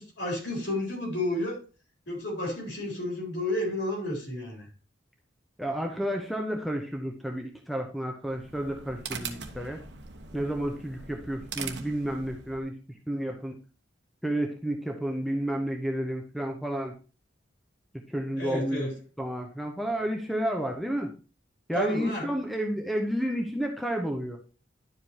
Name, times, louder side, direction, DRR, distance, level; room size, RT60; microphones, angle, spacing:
voice 1, 0.0-1.6 2.1-4.7 18.4-18.9 21.7-22.4, left 1 dB, 70° left, -1 dB, 3.6 m, -31 dB
voice 2, 5.6-9.8 10.3-12.7 13.1-13.6 14.2-16.9 18.1-18.9 19.2-21.1 21.7-24.4, right 1 dB, ahead, 3 dB, 0.7 m, -31 dB
sound 1, 8.2-12.7, right 5 dB, 60° right, 0.9 m, -41 dB
11.0 x 5.0 x 2.8 m, 0.35 s
head